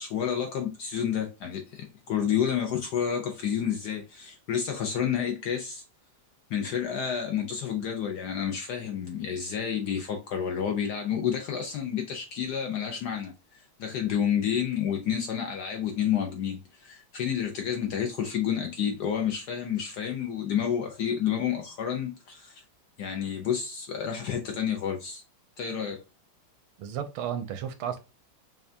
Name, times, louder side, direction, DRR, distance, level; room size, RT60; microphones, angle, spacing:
voice 1, 0.0-5.8 6.5-22.6 23.0-25.2 25.6-26.0, left 8 dB, 70° left, 1.0 m, -30 dB
voice 2, 26.8-28.0, right 9 dB, 80° right, 1.5 m, -33 dB
5.6 x 2.3 x 2.6 m
omnidirectional pair, 2.3 m